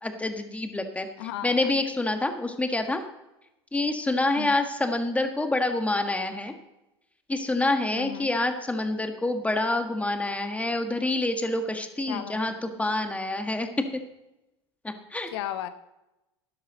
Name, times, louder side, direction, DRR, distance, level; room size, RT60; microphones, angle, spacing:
voice 1, 0.0-1.1 1.4-3.0 3.7-6.5 7.3-14.0 14.8-15.3, left 2 dB, 10° left, 6 dB, 1.6 m, -27 dB
voice 2, 1.2-1.7 4.4-4.6 7.9-8.3 12.1-12.6 15.3-15.7, left 12 dB, 65° left, 12 dB, 1.0 m, -35 dB
12.0 x 11.0 x 4.0 m, 0.96 s
hypercardioid pair, 80°, 14 cm